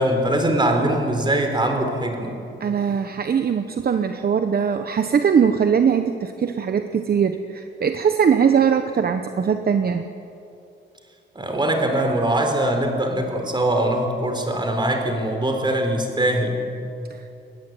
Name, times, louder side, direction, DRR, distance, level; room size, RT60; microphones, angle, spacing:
voice 1, 0.0-2.4 11.3-16.7, right 1 dB, 20° right, 4 dB, 4.1 m, -22 dB
voice 2, 2.6-10.0 17.1-17.3, right 7 dB, 50° right, 7 dB, 1.1 m, -21 dB
22.5 x 19.0 x 9.4 m, 2.7 s
wide cardioid pair, 125°, 21 cm